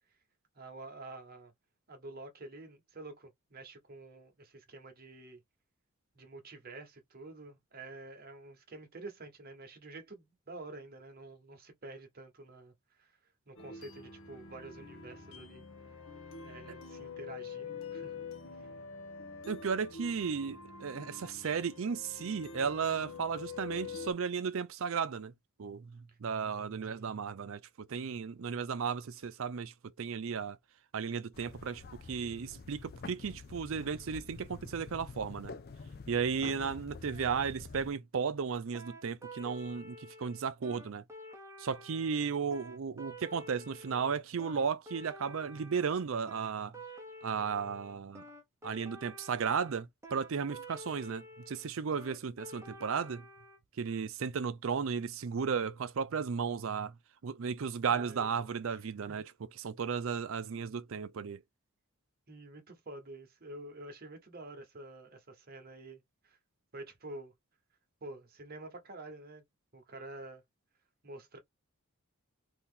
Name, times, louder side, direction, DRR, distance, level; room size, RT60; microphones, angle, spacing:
voice 1, 0.5-1.5 1.9-5.4 6.1-12.7 13.0-13.2 13.5-15.6 16.4-18.2 18.5-18.7 26.1-26.2 26.9-27.2 36.6-36.7 57.9-58.5 59.1-59.2 62.3-66.4 66.7-67.3 68.0-69.4 69.7-70.4 71.0-71.4, right 2 dB, 40° right, 1.0 m, -48 dB
sound 1, 13.6-24.1, left 5 dB, 65° left, 0.9 m, -46 dB
voice 2, 19.5-25.3 25.6-30.6 30.9-35.5 36.1-41.0 41.6-46.7 47.2-48.2 48.6-53.3 53.8-57.0 57.2-59.3 59.6-61.4, right 6 dB, 60° right, 0.5 m, -35 dB
sound 2, 31.3-37.9, left 4 dB, 45° left, 0.4 m, -48 dB
sound 3, 38.7-53.6, equal, 10° right, 0.8 m, -50 dB
2.8 x 2.8 x 3.7 m
head